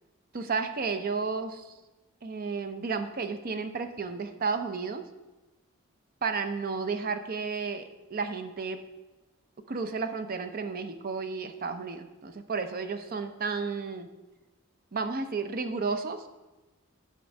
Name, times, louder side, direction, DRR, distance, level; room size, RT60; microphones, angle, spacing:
voice 1, 0.3-1.7 2.2-5.0 6.2-8.8 9.7-14.1 14.9-16.2, right 4 dB, 40° right, 8 dB, 0.6 m, -32 dB
10.5 x 3.8 x 6.3 m, 1.1 s
head